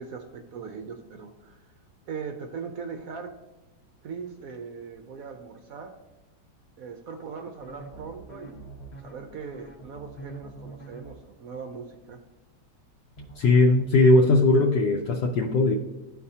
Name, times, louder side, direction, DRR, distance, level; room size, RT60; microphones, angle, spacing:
voice 1, 0.0-1.7 2.1-3.3 4.0-5.9 6.8-8.7 9.0-12.2, right 5 dB, 75° right, 5 dB, 0.8 m, -40 dB
sound 1, 7.6-11.1 13.2-13.8, right 2 dB, 40° left, 1.2 m, -44 dB
voice 2, 13.4-15.8, left 2 dB, 70° left, 0 dB, 1.2 m, -19 dB
12.0 x 4.2 x 2.7 m, 1.1 s
omnidirectional pair, 2.1 m